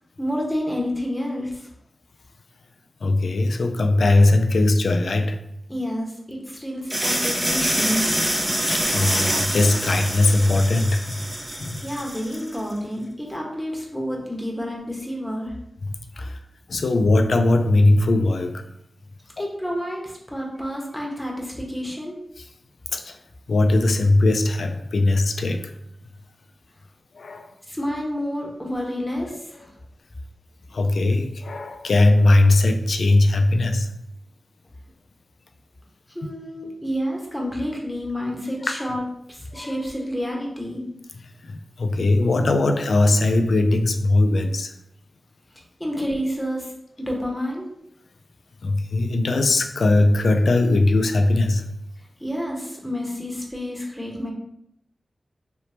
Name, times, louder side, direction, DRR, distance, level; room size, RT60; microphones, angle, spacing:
voice 1, 0.2-1.7 5.7-8.1 11.8-15.5 19.4-22.2 27.7-29.7 36.1-39.0 39.3-40.8 45.8-46.7 47.0-47.7 52.2-54.3, equal, 10° left, 1.0 m, -29 dB
voice 2, 3.0-5.4 8.7-11.2 11.6-11.8 15.8-16.4 16.7-18.6 22.9-23.2 23.5-25.7 27.1-27.5 30.7-33.9 36.2-36.3 38.6-38.7 39.5-39.8 41.4-44.7 48.6-51.7, left 2 dB, 80° left, 0.3 m, -20 dB
sound 1, 6.9-12.6, right 1 dB, 15° right, 0.6 m, -25 dB
3.4 x 2.9 x 2.8 m
cardioid pair, 55°, 0 cm